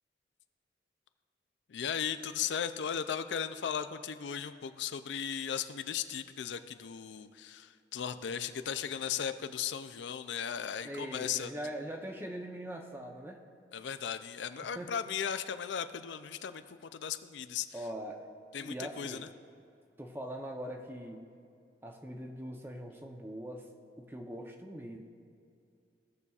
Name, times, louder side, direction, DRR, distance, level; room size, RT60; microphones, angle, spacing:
voice 1, 1.7-11.5 13.7-17.9 18.5-19.3, left 8 dB, 85° left, 10 dB, 0.4 m, -37 dB
voice 2, 10.8-13.4 14.8-14.9 17.7-18.3 18.6-19.3 20.0-21.3 21.8-23.7 24.0-25.0, right 1 dB, 15° right, 2 dB, 0.7 m, -42 dB
17.5 x 6.8 x 2.4 m, 2.4 s
head